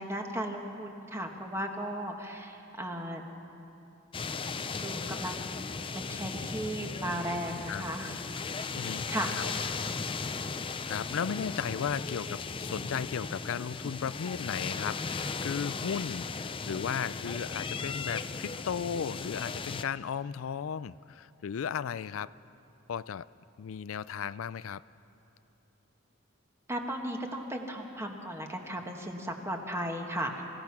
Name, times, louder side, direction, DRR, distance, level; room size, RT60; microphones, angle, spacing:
voice 1, 0.0-3.2 4.8-5.5 5.9-8.1 8.8-9.4 26.7-30.4, right 1 dB, 15° right, 2 dB, 1.6 m, -36 dB
sound 1, 4.1-19.8, left 4 dB, 25° left, 0.5 m, -37 dB
sound 2, 8.5-10.2, left 2 dB, 80° right, 4.0 m, -46 dB
voice 2, 8.7-9.5 10.9-22.3 22.9-23.3 23.6-24.8, left 7 dB, 85° left, 17 dB, 0.4 m, -35 dB
28.0 x 16.5 x 6.0 m, 2.8 s
head